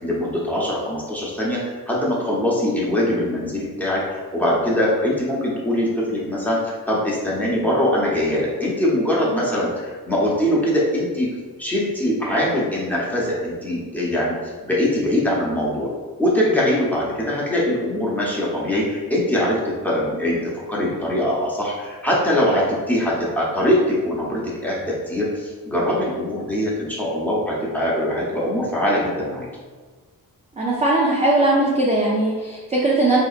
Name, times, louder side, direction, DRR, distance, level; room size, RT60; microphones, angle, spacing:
voice 1, 0.0-11.3 11.6-15.9 16.2-29.5, left 1 dB, 5° left, -6 dB, 0.9 m, -22 dB
voice 2, 30.6-33.2, right 2 dB, 20° right, -4 dB, 0.4 m, -19 dB
4.1 x 2.8 x 2.4 m, 1.4 s
wide cardioid pair, 125°, 37 cm